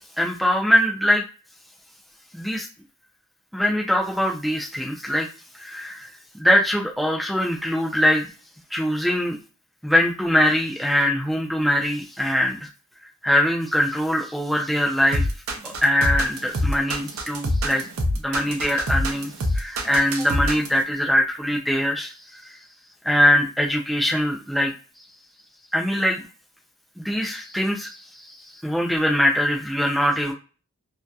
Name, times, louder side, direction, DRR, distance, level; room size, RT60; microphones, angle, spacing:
voice 1, 0.2-1.2 2.3-2.7 3.5-5.3 5.6-6.1 6.4-8.2 8.7-9.4 9.8-12.7 13.2-15.3 15.6-17.9 18.1-22.6 23.0-24.7 25.7-26.2 27.0-30.3, left 1 dB, ahead, 0 dB, 0.4 m, -22 dB
sound 1, 15.1-20.8, equal, 65° right, 0.5 m, -25 dB
2.6 x 2.1 x 2.3 m, 0.34 s
head